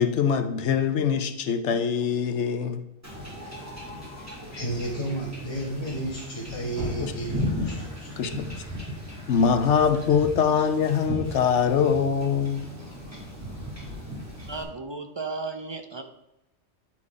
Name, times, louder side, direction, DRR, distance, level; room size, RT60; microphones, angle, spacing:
voice 1, 0.0-2.8 7.0-7.1 8.2-8.5 9.3-12.7, left 7 dB, 70° left, 9 dB, 1.0 m, -23 dB
Wind / Ocean / Boat Water vehicle, 3.0-14.6, left 1 dB, 15° right, 2.2 m, -36 dB
voice 2, 4.5-8.1, right 1 dB, 25° left, -5 dB, 1.3 m, -32 dB
voice 3, 14.5-16.0, right 3 dB, 35° right, 6 dB, 0.5 m, -34 dB
9.6 x 4.5 x 4.8 m, 0.90 s
omnidirectional pair, 1.3 m